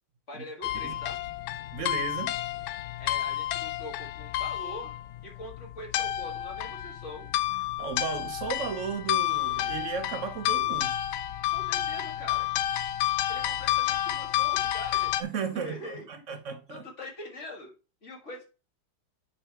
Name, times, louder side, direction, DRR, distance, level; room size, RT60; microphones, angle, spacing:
voice 1, 0.3-1.2 3.0-5.0 5.2-7.3 11.5-12.5 13.3-15.1 15.6-16.4 16.7-17.7 18.0-18.4, left 1 dB, 40° left, 1.8 m, -43 dB
sound 1, 0.6-15.2, left 13 dB, 85° left, 1.4 m, -30 dB
voice 2, 1.7-2.4 7.8-11.0 15.2-16.8, right 6 dB, 65° right, 0.7 m, -34 dB
8.8 x 5.5 x 3.3 m
omnidirectional pair, 2.1 m